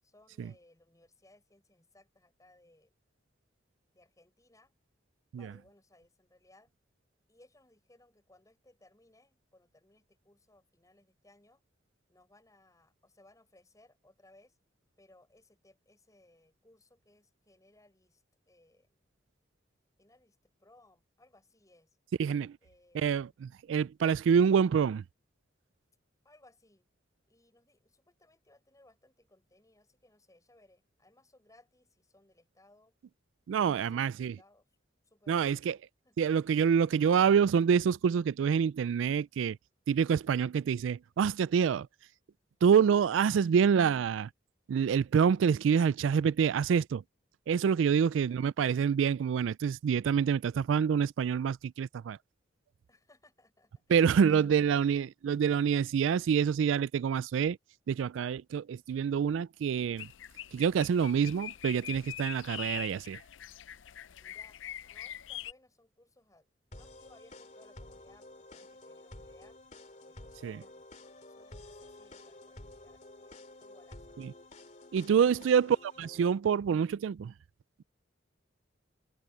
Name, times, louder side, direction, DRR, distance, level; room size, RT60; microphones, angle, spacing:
voice 1, 0.0-3.0 3.9-4.7 5.3-6.7 7.3-11.6 12.1-14.6 15.0-19.1 20.0-22.0 22.6-23.2 26.2-26.9 27.3-33.0 33.5-34.7 35.0-35.5 36.0-36.2 47.9-48.4 52.9-55.1 64.2-64.6 64.9-66.5 66.7-69.6 70.1-70.9 71.3-74.2 75.1-75.7, left 1 dB, 20° left, 7.0 m, -64 dB
voice 2, 22.2-22.6 22.9-25.0 33.5-34.4 35.3-35.8 36.2-39.6 39.9-41.9 42.6-44.3 44.7-47.0 47.5-52.2 53.9-57.6 57.9-60.1 60.5-63.2 70.4-70.6 74.2-74.3 74.9-77.3, right 7 dB, 80° right, 0.3 m, -27 dB
sound 1, 60.0-65.5, left 11 dB, 80° left, 0.5 m, -43 dB
sound 2, 66.7-76.3, left 2 dB, 40° left, 2.9 m, -51 dB
head